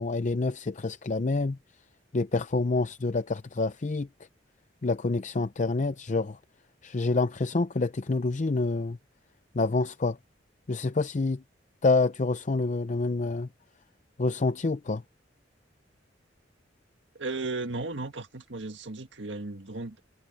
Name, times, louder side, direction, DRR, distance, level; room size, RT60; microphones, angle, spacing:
voice 1, 0.0-1.6 2.1-4.1 4.8-6.4 6.8-9.0 9.5-10.2 10.7-11.4 11.8-13.5 14.2-15.0, left 3 dB, 40° left, 0.5 m, -27 dB
voice 2, 17.2-20.0, right 3 dB, 70° right, 1.7 m, -35 dB
head